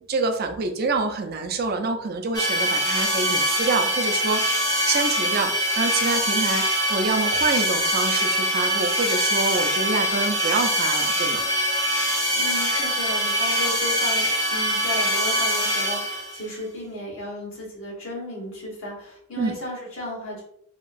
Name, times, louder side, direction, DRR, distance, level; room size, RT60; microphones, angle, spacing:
voice 1, 0.1-11.4 19.4-19.5, right 3 dB, 50° right, 5 dB, 0.4 m, -26 dB
sound 1, 2.3-16.4, equal, 20° left, 0.6 m, -23 dB
voice 2, 12.3-20.4, left 1 dB, 85° left, -4 dB, 1.3 m, -34 dB
2.9 x 2.3 x 2.5 m, 0.70 s
head